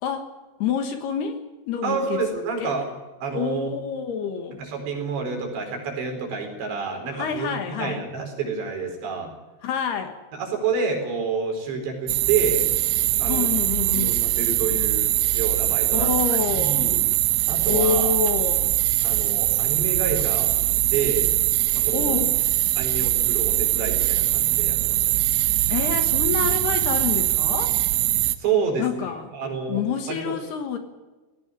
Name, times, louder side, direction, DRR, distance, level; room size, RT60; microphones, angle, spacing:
voice 1, 0.0-0.3 0.6-1.4 1.7-2.2 2.6-2.7 3.3-4.6 7.1-8.0 9.6-10.2 13.3-14.1 15.9-17.0 17.7-18.7 21.9-22.4 25.7-27.7 28.8-29.3 29.7-30.8, left 7 dB, 65° left, 7 dB, 3.0 m, -27 dB
voice 2, 1.8-2.9 3.2-3.7 4.6-7.5 7.8-9.3 10.3-12.7 13.2-13.5 13.9-15.1 15.3-17.0 17.5-18.2 19.0-21.3 21.7-22.2 22.8-25.2 28.4-29.1 29.3-29.8 30.1-30.3, right 5 dB, 60° right, 3 dB, 6.5 m, -28 dB
sound 1, 12.1-28.4, right 17 dB, 80° right, 3.2 m, -22 dB
18.0 x 16.0 x 9.8 m, 1.2 s
omnidirectional pair, 5.8 m